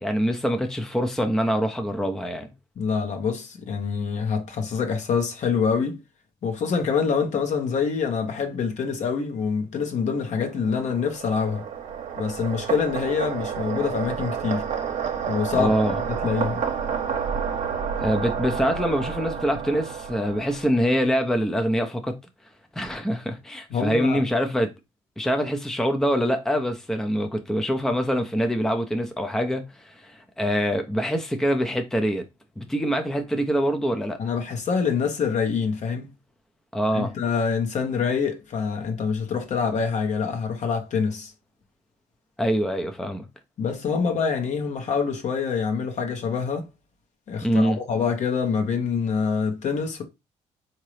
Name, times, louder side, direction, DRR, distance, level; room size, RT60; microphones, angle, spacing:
voice 1, 0.0-2.5 15.5-16.0 18.0-22.2 22.7-24.7 25.2-32.3 32.6-34.2 36.7-37.1 42.4-43.3 47.4-47.8, equal, 5° left, 0.6 m, -24 dB
voice 2, 2.8-6.0 6.4-11.6 12.2-14.7 15.3-16.6 23.7-24.2 34.2-36.1 36.9-41.3 43.6-46.7 47.3-50.0, left 5 dB, 55° left, 1.1 m, -26 dB
sound 1, 10.3-21.0, right 7 dB, 55° right, 0.9 m, -30 dB
3.7 x 2.8 x 3.1 m
hypercardioid pair, 60°, 15 cm